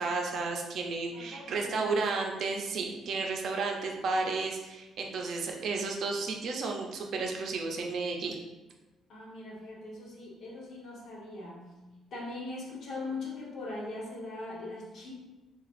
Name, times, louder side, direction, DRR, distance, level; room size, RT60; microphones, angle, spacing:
voice 1, 0.0-8.4, right 3 dB, 60° right, 2 dB, 0.6 m, -32 dB
voice 2, 1.1-1.9 9.1-11.7 12.1-15.1, left 2 dB, 60° left, -4 dB, 1.4 m, -41 dB
7.0 x 2.4 x 2.5 m, 1.1 s
cardioid pair, 135°, 0 cm